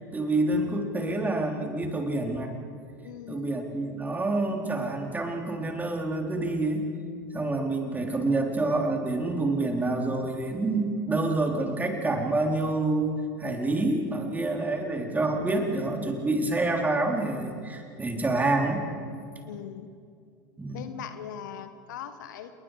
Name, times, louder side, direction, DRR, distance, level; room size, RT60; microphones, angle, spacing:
voice 1, 0.1-2.5 3.3-6.8 7.3-18.9 20.6-20.8, right 2 dB, 15° right, 2 dB, 3.7 m, -27 dB
voice 2, 3.0-3.6 19.4-19.9 20.7-22.5, left 9 dB, 65° left, 10 dB, 1.3 m, -40 dB
28.5 x 22.0 x 5.0 m, 2.3 s
figure-of-eight pair, 75°, 11 cm